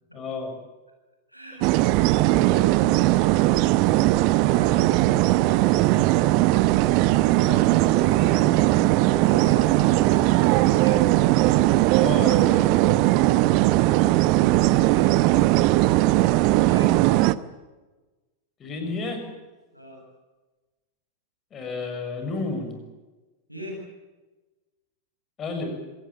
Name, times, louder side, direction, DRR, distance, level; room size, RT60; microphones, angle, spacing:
voice 1, 0.1-0.5 7.2-8.7 11.9-13.1 18.6-19.3 21.5-22.8 25.4-25.7, left 3 dB, 25° left, 5 dB, 6.6 m, -32 dB
voice 2, 1.3-1.7 4.4-5.9 9.1-11.0 14.7-15.5 16.6-16.9 19.7-20.0 23.5-23.8, right 1 dB, 90° right, 1 dB, 7.9 m, -39 dB
sound 1, 1.6-17.3, right 17 dB, 45° right, 0.8 m, -19 dB
26.0 x 18.5 x 8.5 m, 1.2 s
figure-of-eight pair, 90°, 0 cm